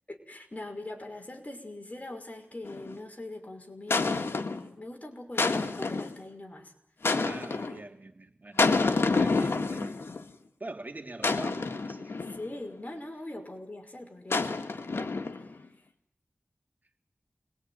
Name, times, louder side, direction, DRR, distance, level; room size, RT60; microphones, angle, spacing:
voice 1, 0.1-6.7 12.3-15.6, left 1 dB, 40° left, 4 dB, 5.6 m, -42 dB
sound 1, 2.6-3.0 3.9-4.7 5.4-6.2 7.0-7.8 8.6-10.2 11.2-12.5 14.3-15.5, left 3 dB, 90° left, 1.7 m, -28 dB
voice 2, 7.1-10.0 10.6-12.2, right 2 dB, 45° right, 4 dB, 3.1 m, -44 dB
28.5 x 22.5 x 9.4 m, 0.76 s
wide cardioid pair, 55°, 4 cm